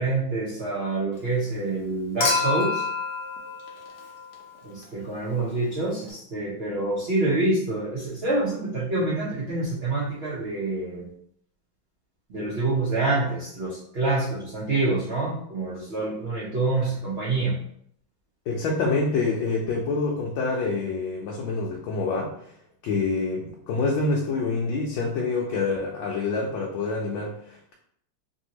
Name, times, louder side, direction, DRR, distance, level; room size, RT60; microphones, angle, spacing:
voice 1, 0.0-2.8 4.9-11.0 12.3-17.5, right 2 dB, 75° right, -7 dB, 0.5 m, -26 dB
Human group actions / Chink clink / Liquid, 2.2-4.6 6.1-6.2, left 4 dB, 60° left, 0.9 m, -28 dB
voice 2, 18.5-22.3 22.8-27.7, left 3 dB, 80° left, -2 dB, 1.3 m, -26 dB
3.3 x 2.7 x 2.9 m, 0.68 s
omnidirectional pair, 2.2 m